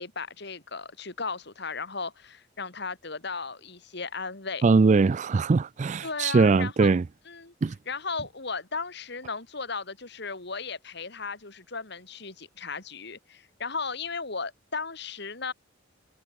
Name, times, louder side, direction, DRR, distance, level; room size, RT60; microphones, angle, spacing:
voice 1, 0.0-4.6 6.0-7.0 7.3-7.5 7.9-15.5, left 4 dB, 60° left, 3.0 m, -36 dB
voice 2, 4.6-7.0 7.6-7.8, right 4 dB, 40° right, 0.4 m, -21 dB
head